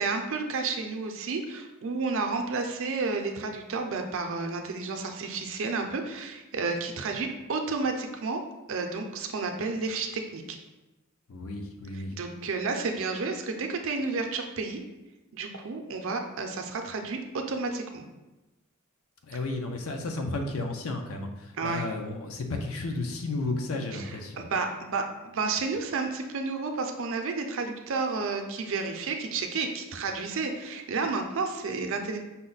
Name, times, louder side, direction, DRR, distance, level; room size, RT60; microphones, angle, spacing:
voice 1, 0.0-8.4 8.7-10.6 11.9-14.8 15.3-18.0 21.6-21.9 23.9-32.2, right 4 dB, 65° right, 4 dB, 0.5 m, -31 dB
voice 2, 11.3-12.1 19.2-24.4, left 2 dB, 70° left, 4 dB, 0.6 m, -33 dB
5.5 x 2.1 x 3.9 m, 1.0 s
head